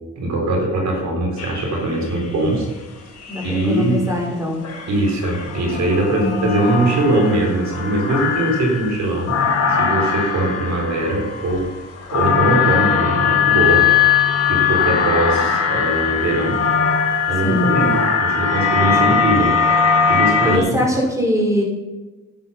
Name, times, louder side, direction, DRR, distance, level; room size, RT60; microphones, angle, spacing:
voice 1, 0.2-2.7 3.4-4.1 4.9-9.4 9.7-11.7 12.1-13.8 14.5-16.6 17.3-19.5 20.1-20.8, right 2 dB, 65° right, 0 dB, 4.1 m, -21 dB
sound 1, 1.4-2.2 3.2-3.9 4.6-20.6, left 6 dB, 55° left, 3.7 m, -20 dB
voice 2, 3.3-4.6 6.2-6.6 17.4-17.7 20.4-21.6, left 1 dB, 10° right, -1 dB, 5.0 m, -21 dB
11.5 x 9.8 x 5.7 m, 1.2 s
cardioid pair, 90°, 30 cm